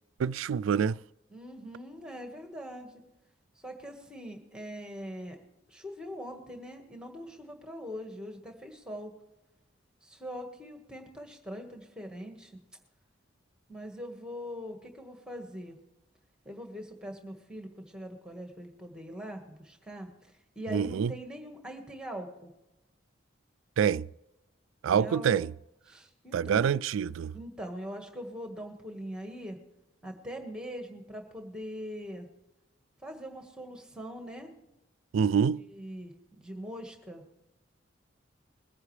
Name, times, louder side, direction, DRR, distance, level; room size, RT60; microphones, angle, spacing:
voice 1, 0.2-1.0 20.7-21.1 23.8-24.1 24.8-25.5 26.3-27.3 35.1-35.6, right 7 dB, 85° right, 0.3 m, -26 dB
voice 2, 1.3-3.0 3.5-5.4 5.7-9.1 10.0-12.6 13.7-15.8 16.4-22.5 24.8-25.3 25.9-26.7 27.3-29.6 30.0-32.3 33.0-34.5 35.6-37.2, equal, 5° right, 1.5 m, -42 dB
22.0 x 9.7 x 3.3 m
head